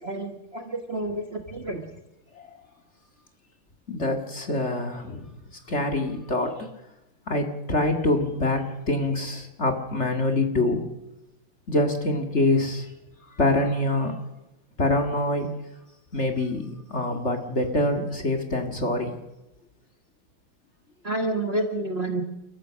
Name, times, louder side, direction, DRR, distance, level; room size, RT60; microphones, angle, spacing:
voice 1, 0.0-1.9 21.0-22.2, right 2 dB, 35° right, 4 dB, 1.4 m, -29 dB
voice 2, 3.9-5.3 5.7-6.6 7.3-10.8 11.7-12.9 13.3-14.1 14.8-15.5 16.1-19.2, left 2 dB, 35° left, 4 dB, 2.1 m, -25 dB
30.0 x 14.0 x 6.3 m, 0.98 s
omnidirectional pair, 2.3 m